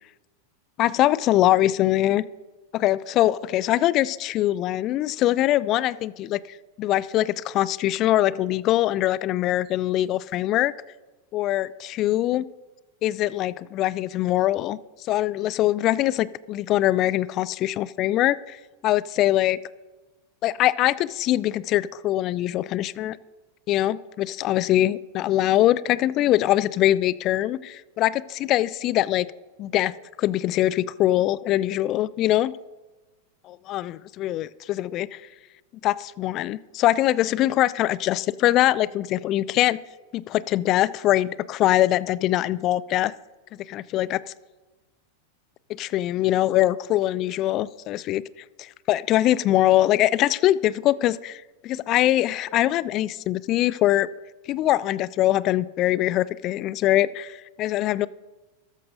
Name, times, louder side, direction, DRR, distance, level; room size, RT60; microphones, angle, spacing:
voice 1, 0.8-2.3 2.7-10.7 11.3-12.4 13.0-14.8 15.1-18.6 18.8-19.6 20.4-23.2 23.7-29.3 29.6-29.9 30.2-32.5 33.7-35.2 35.8-39.8 40.1-43.1 43.7-44.2 45.7-48.2 48.9-54.1 54.5-58.1, left 14 dB, 35° left, 19 dB, 0.3 m, -23 dB
13.5 x 12.5 x 2.7 m, 1.2 s
figure-of-eight pair, 90°, 0 cm